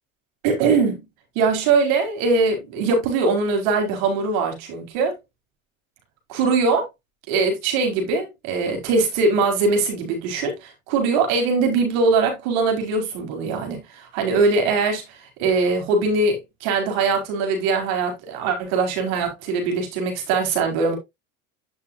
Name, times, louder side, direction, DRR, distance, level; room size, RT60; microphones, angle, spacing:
voice 1, 0.4-1.0 1.3-5.1 6.3-6.9 7.3-21.0, right 4 dB, 70° right, 4.5 m, -21 dB
9.5 x 7.2 x 2.6 m
supercardioid pair, 95°, 41 cm